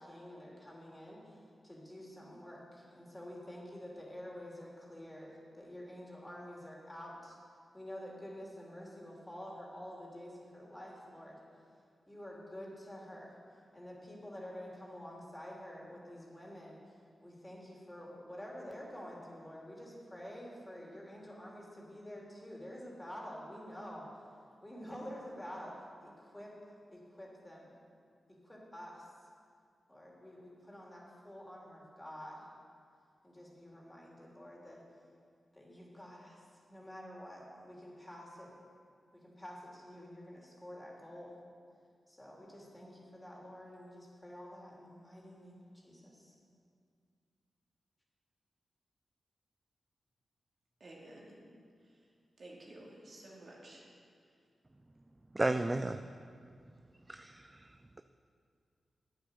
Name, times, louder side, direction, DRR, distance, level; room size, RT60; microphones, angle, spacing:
voice 1, 0.0-7.4 7.7-11.4 12.1-13.3 13.7-16.8 17.2-24.1 24.6-25.7 26.0-27.7 28.3-29.1 29.9-32.5 33.2-34.8 35.5-38.5 39.1-41.4 42.1-46.3, equal, 15° left, -3 dB, 3.3 m, -49 dB
voice 2, 50.8-51.4 52.4-53.8, right 1 dB, 60° right, -4 dB, 2.8 m, -52 dB
voice 3, 55.3-56.0 57.1-57.6, right 2 dB, 25° right, 9 dB, 0.4 m, -33 dB
9.3 x 8.7 x 6.8 m, 2.2 s
cardioid pair, 45°, 0 cm